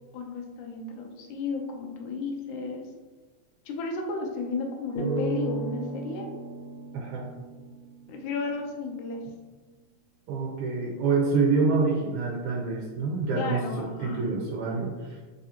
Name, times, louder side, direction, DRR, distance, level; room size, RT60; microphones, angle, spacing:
voice 1, 0.1-2.8 3.7-6.3 8.1-9.2 13.4-14.3, left 3 dB, 85° left, 2 dB, 2.1 m, -33 dB
sound 1, 5.0-8.3, right 1 dB, 45° left, 1.3 m, -34 dB
voice 2, 6.9-7.3 10.3-13.6 14.0-15.2, right 4 dB, 85° right, -2 dB, 2.0 m, -26 dB
5.0 x 3.7 x 2.8 m, 1.3 s
omnidirectional pair, 3.5 m